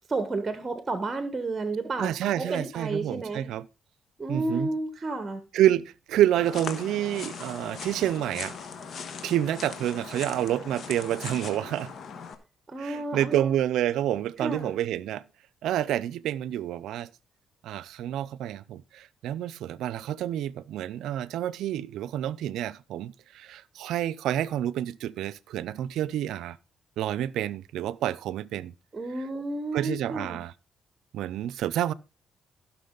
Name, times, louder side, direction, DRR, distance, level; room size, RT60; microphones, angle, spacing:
voice 1, 0.1-3.5 4.2-5.4 12.7-13.6 14.4-14.8 28.9-30.4, right 3 dB, 25° right, 1.3 m, -31 dB
voice 2, 2.0-3.7 4.3-4.7 5.5-8.6 9.2-11.9 12.8-15.2 15.6-17.1 17.6-26.6 27.0-28.7 29.7-30.5 31.1-31.9, right 12 dB, 85° right, 0.5 m, -28 dB
sound 1, 6.4-12.4, left 6 dB, 60° left, 1.4 m, -39 dB
15.5 x 6.0 x 3.9 m
cardioid pair, 90°, 0 cm